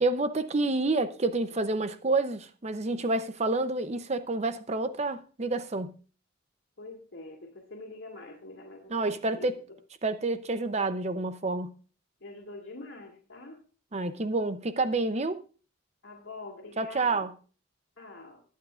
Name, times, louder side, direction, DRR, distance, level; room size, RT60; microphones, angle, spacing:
voice 1, 0.0-5.9 8.9-9.6 10.0-11.7 13.9-15.4 16.8-17.3, right 2 dB, 35° right, 0.7 m, -28 dB
voice 2, 6.8-9.5 12.2-13.6 16.0-17.2 18.0-18.4, left 2 dB, 70° left, 2.3 m, -45 dB
21.0 x 8.4 x 2.5 m
head